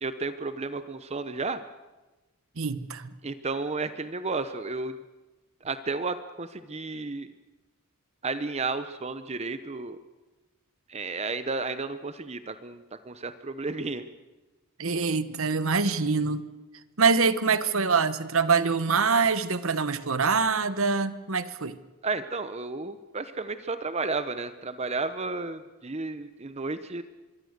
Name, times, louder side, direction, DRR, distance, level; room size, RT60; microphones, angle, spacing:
voice 1, 0.0-1.6 3.2-5.0 5.6-7.3 8.2-10.0 10.9-14.1 22.0-27.0, right 3 dB, 30° right, 11 dB, 0.8 m, -32 dB
voice 2, 2.6-3.1 14.8-16.4 17.0-21.8, right 5 dB, 65° right, 14 dB, 1.1 m, -25 dB
25.0 x 22.5 x 6.7 m, 1.2 s
head